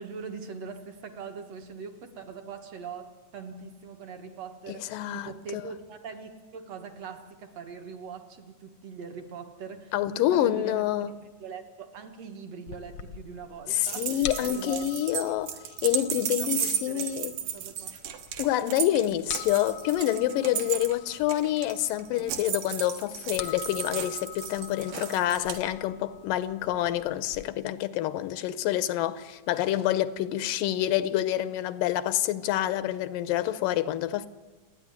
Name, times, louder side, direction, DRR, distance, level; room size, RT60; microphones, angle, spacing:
voice 1, 0.0-10.9 11.2-14.8 15.2-15.4 16.4-18.0, right 5 dB, 60° right, 2.2 m, -42 dB
voice 2, 4.7-5.6 9.9-11.1 13.7-17.3 18.4-34.3, left 13 dB, 85° left, 2.5 m, -27 dB
sound 1, 12.7-27.4, left 10 dB, 70° left, 1.3 m, -45 dB
sound 2, 13.8-25.6, right 9 dB, 80° right, 3.0 m, -34 dB
29.0 x 10.0 x 9.6 m
omnidirectional pair, 3.8 m